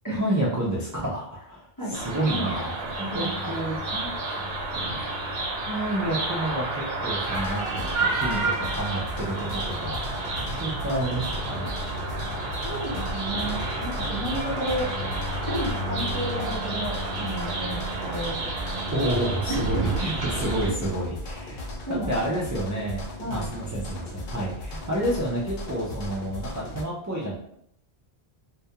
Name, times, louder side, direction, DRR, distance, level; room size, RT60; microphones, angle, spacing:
voice 1, 0.1-2.7 3.1-4.1 5.7-10.0 10.6-11.7 18.9-27.4, right 1 dB, 30° right, -6 dB, 0.3 m, -29 dB
sound 1, 1.9-20.7, right 2 dB, 80° right, 0.8 m, -30 dB
voice 2, 2.3-2.6 3.0-3.5 12.6-14.9 15.5-18.5 19.5-19.9 20.6-20.7 21.9-22.1 23.2-23.4, right 1 dB, 20° left, -7 dB, 0.7 m, -32 dB
sound 2, 7.2-26.8, left 1 dB, 65° left, 0.7 m, -37 dB
2.3 x 2.2 x 2.7 m, 0.71 s
omnidirectional pair, 1.0 m